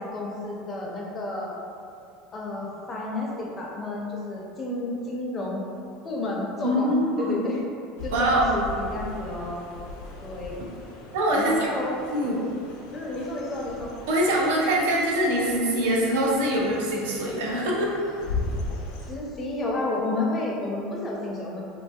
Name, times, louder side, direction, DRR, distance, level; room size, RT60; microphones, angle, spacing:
voice 1, 0.0-1.5 2.3-5.6 6.0-6.9 7.2-7.6 8.0-9.6 10.2-10.6 11.4-11.9 12.9-13.9 19.1-21.6, left 2 dB, 25° left, -3 dB, 0.4 m, -31 dB
voice 2, 6.6-7.5 8.1-8.6 11.1-11.7 12.1-12.4 14.1-17.9, right 1 dB, 90° right, -3 dB, 0.5 m, -23 dB
sound 1, 8.0-19.1, left 3 dB, 80° left, 0.4 m, -38 dB
2.8 x 2.3 x 2.6 m, 2.5 s
supercardioid pair, 135°, 0 cm